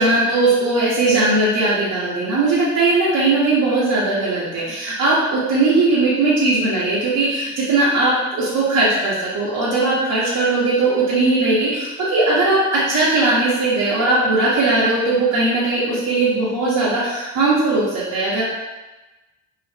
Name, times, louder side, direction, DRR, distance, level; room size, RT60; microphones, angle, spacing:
voice 1, 0.0-18.4, right 2 dB, 55° right, -9 dB, 1.1 m, -18 dB
3.0 x 2.5 x 4.3 m, 1.1 s
supercardioid pair, 75°, 38 cm